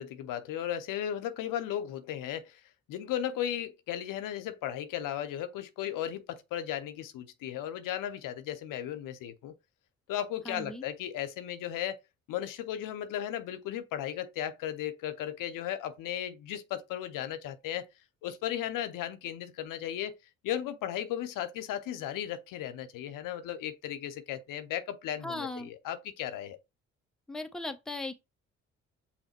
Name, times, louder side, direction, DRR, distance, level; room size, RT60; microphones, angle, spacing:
voice 1, 0.0-2.6 2.9-9.6 10.1-12.0 12.3-17.9 18.2-20.1 20.4-26.6, left 11 dB, 70° left, 0.7 m, -35 dB
voice 2, 10.5-10.8 25.2-25.7 27.3-28.1, left 2 dB, ahead, 0.7 m, -37 dB
5.7 x 2.2 x 4.3 m
hypercardioid pair, 50°, 34 cm